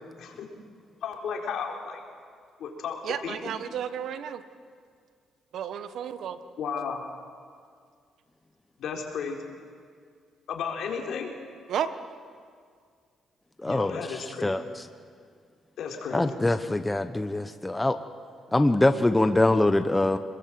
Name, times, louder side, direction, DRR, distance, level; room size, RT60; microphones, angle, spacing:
voice 1, 1.0-2.0 2.6-3.5 6.6-7.0 8.8-9.4 10.5-11.3 13.7-14.6 15.8-16.3, left 6 dB, 70° left, 1 dB, 4.3 m, -34 dB
voice 2, 3.0-4.4 5.5-6.4 11.7-11.9, right 9 dB, 70° right, 11 dB, 1.4 m, -32 dB
voice 3, 13.6-14.8 16.1-18.0 18.5-20.2, left 2 dB, 15° left, 9 dB, 1.0 m, -24 dB
27.0 x 21.5 x 7.8 m, 2.1 s
cardioid pair, 90°, 0 cm